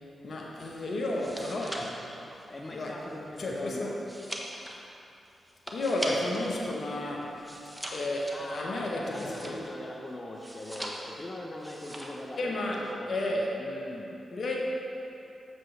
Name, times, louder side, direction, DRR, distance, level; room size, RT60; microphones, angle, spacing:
voice 1, 0.2-2.0 2.7-3.0 3.4-3.9 5.7-7.3 7.9-9.6 12.4-13.5 14.3-14.6, left 1 dB, 65° left, -1 dB, 1.0 m, -32 dB
sound 1, 1.0-6.5 6.8-9.9 10.4-11.3 11.6-12.3 12.5-12.9, equal, 10° right, 1.1 m, -41 dB
voice 2, 2.5-3.9 8.3-14.1, left 1 dB, 35° left, -1 dB, 0.8 m, -41 dB
7.6 x 7.4 x 3.3 m, 2.8 s
supercardioid pair, 40°, 0 cm